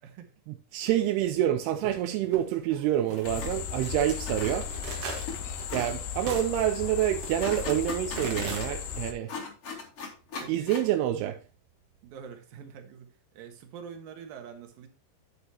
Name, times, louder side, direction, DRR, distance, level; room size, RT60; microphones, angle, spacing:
voice 1, 0.0-0.3 10.4-10.7 12.0-14.9, right 7 dB, 70° right, 3.0 m, -45 dB
voice 2, 0.7-4.7 5.7-9.3 10.5-11.4, right 12 dB, 85° right, 2.6 m, -27 dB
sound 1, 1.8-8.6, right 4 dB, 50° right, 2.3 m, -41 dB
sound 2, 3.1-3.5 4.0-4.9 5.3-5.4 5.7-5.9 7.4-8.7 9.3-10.9, left 4 dB, 40° left, 3.1 m, -38 dB
sound 3, 3.3-9.1, left 8 dB, 85° left, 3.2 m, -36 dB
10.0 x 7.9 x 2.9 m
omnidirectional pair, 4.6 m